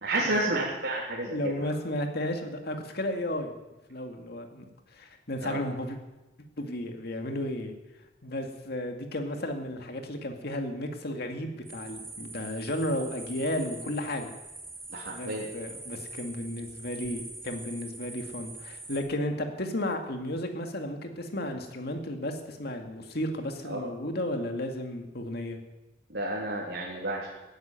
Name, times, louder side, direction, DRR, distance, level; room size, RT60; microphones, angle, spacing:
voice 1, 0.0-1.7 5.4-5.6 14.9-15.5 23.7-23.9 26.1-27.3, right 2 dB, 70° right, -5 dB, 3.3 m, -31 dB
voice 2, 1.2-3.5 3.9-4.7 4.9-6.0 6.6-7.8 8.2-14.3 15.1-25.6, left 1 dB, 60° left, 5 dB, 2.1 m, -33 dB
sound 1, 11.7-19.0, right 2 dB, 15° right, 3.4 m, -44 dB
16.0 x 9.9 x 9.2 m, 1.1 s
head